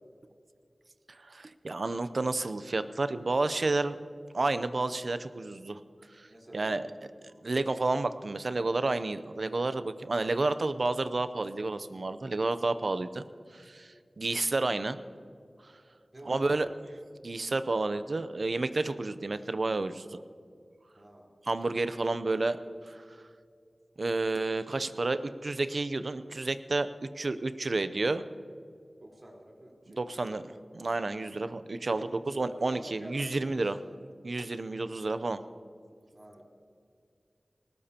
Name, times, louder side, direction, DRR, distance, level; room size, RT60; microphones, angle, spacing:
voice 1, 1.2-4.0 4.3-5.8 6.2-6.3 6.5-6.8 7.4-13.2 13.5-15.0 16.3-16.7 17.2-20.2 21.4-22.6 22.9-23.0 24.0-28.2 29.9-30.4 30.7-33.8 34.2-35.4, right 2 dB, 65° right, 12 dB, 0.6 m, -30 dB
voice 2, 6.3-6.8 16.1-16.7 20.9-21.3 29.0-30.6 31.9-33.2 33.5-34.0 36.1-36.4, right 1 dB, 40° right, -2 dB, 4.0 m, -49 dB
19.5 x 18.5 x 2.9 m, 2.3 s
wide cardioid pair, 70°, 0 cm